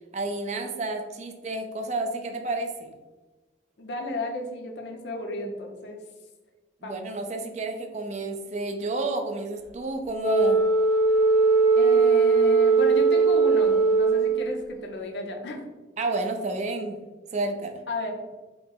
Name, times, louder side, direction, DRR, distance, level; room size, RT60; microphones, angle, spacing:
voice 1, 0.1-2.9 6.8-10.6 16.0-17.0 17.3-17.8, right 2 dB, 40° right, 5 dB, 0.4 m, -30 dB
voice 2, 3.8-6.0 6.8-7.1 11.8-15.7 17.9-18.3, left 2 dB, 70° left, 2 dB, 0.7 m, -33 dB
Wind instrument woodwind instrument, 10.2-14.6, right 4 dB, 30° left, 1.2 m, -20 dB
4.6 x 2.0 x 3.7 m, 1.2 s
head